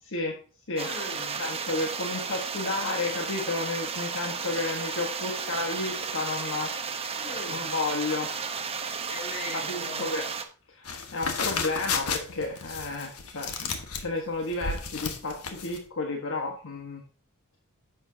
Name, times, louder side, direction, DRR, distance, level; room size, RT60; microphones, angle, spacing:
voice 1, 0.8-1.4 7.2-7.7 9.1-10.1, left 2 dB, 30° left, 0 dB, 3.6 m, -39 dB
sound 1, 0.8-10.4, right 5 dB, 25° right, 0.9 m, -33 dB
voice 2, 1.4-6.7 7.5-8.3 9.5-10.2 10.8-13.5 14.0-17.0, left 3 dB, 60° left, 1 dB, 1.4 m, -32 dB
sound 2, 10.8-15.8, left 5 dB, 85° left, 1.3 m, -32 dB
10.5 x 7.3 x 2.8 m, 0.38 s
head